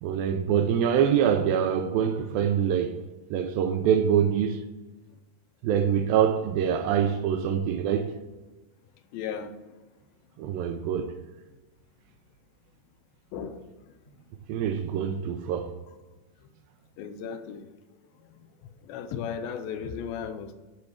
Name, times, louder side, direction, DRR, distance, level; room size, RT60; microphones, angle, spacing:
voice 1, 0.0-3.0 3.3-4.6 5.6-8.2 10.4-11.1 14.5-15.7, right 8 dB, 80° right, 2.3 m, -25 dB
voice 2, 9.1-9.5 13.3-13.6 17.0-17.7 18.9-20.5, left 7 dB, 80° left, 2.4 m, -35 dB
12.0 x 4.5 x 7.1 m
omnidirectional pair, 4.3 m